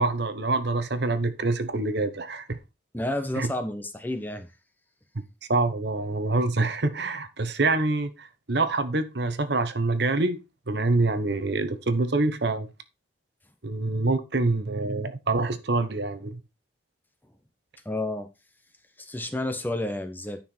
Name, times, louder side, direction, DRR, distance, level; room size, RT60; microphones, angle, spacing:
voice 1, 0.0-2.6 3.4-3.5 5.5-10.4 10.7-12.7 13.6-16.4, right 2 dB, 60° right, 1.0 m, -26 dB
voice 2, 2.9-4.5 17.8-18.3 19.0-20.4, left 1 dB, 10° left, 1.0 m, -30 dB
10.0 x 5.9 x 4.4 m
head